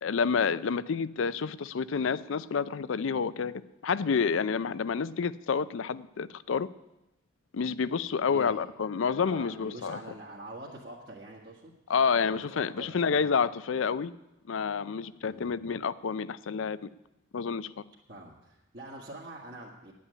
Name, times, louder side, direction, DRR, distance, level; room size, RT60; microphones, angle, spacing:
voice 1, 0.0-3.5 3.8-6.7 7.5-10.0 11.9-14.1 14.5-16.9 17.3-17.7, left 6 dB, 80° left, 17 dB, 0.5 m, -29 dB
voice 2, 8.3-8.6 9.3-11.8 12.1-13.3 15.2-15.6 18.1-19.9, right 1 dB, 55° right, -4 dB, 1.7 m, -45 dB
9.7 x 8.5 x 9.8 m, 0.94 s
head